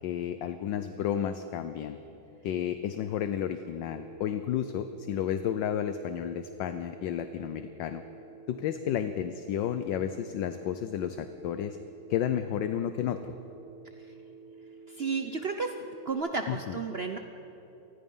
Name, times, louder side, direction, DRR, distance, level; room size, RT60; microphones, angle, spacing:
voice 1, 0.0-2.0 2.4-8.0 8.5-11.8 12.1-13.3 16.5-16.8, left 9 dB, 65° left, 10 dB, 1.3 m, -32 dB
Telephone, 3.9-16.1, right 4 dB, 45° right, 1.7 m, -50 dB
voice 2, 14.9-15.7 16.1-17.2, right 4 dB, 90° right, 5 dB, 0.5 m, -32 dB
27.5 x 20.0 x 5.6 m, 3.0 s
omnidirectional pair, 2.4 m